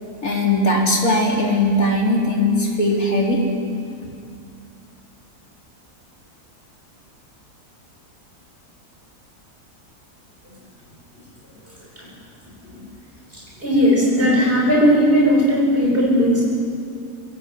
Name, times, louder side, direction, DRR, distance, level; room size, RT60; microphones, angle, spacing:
voice 1, 0.2-3.4, left 1 dB, 60° left, -1 dB, 4.3 m, -19 dB
voice 2, 13.3-16.4, equal, 35° right, -3 dB, 8.3 m, -17 dB
26.0 x 21.5 x 8.5 m, 2.4 s
omnidirectional pair, 1.7 m